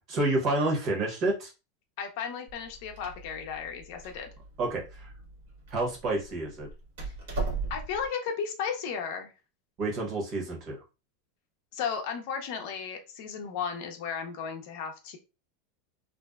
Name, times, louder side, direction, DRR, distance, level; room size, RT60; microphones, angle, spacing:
voice 1, 0.1-1.5 4.6-5.1 5.7-6.7 9.8-10.8, right 2 dB, 40° right, 0 dB, 1.0 m, -29 dB
voice 2, 2.0-4.3 7.7-9.3 11.7-15.2, left 6 dB, 60° left, 4 dB, 0.5 m, -34 dB
Door, 2.5-8.1, right 3 dB, 85° right, 1.3 m, -38 dB
2.5 x 2.2 x 2.2 m, 0.29 s
supercardioid pair, 150°, 0 cm